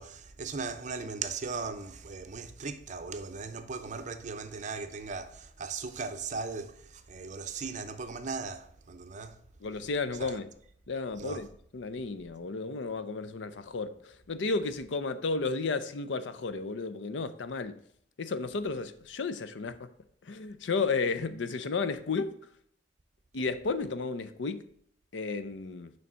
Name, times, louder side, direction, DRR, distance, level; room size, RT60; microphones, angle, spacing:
voice 1, 0.0-9.4 10.2-10.3 11.2-11.4, right 4 dB, 40° right, 0.6 m, -38 dB
voice 2, 9.6-10.5 10.9-11.5 11.7-17.8 18.2-19.9 20.2-22.3 23.3-24.7 25.1-25.9, left 4 dB, 90° left, 0.6 m, -33 dB
6.8 x 3.3 x 6.1 m
head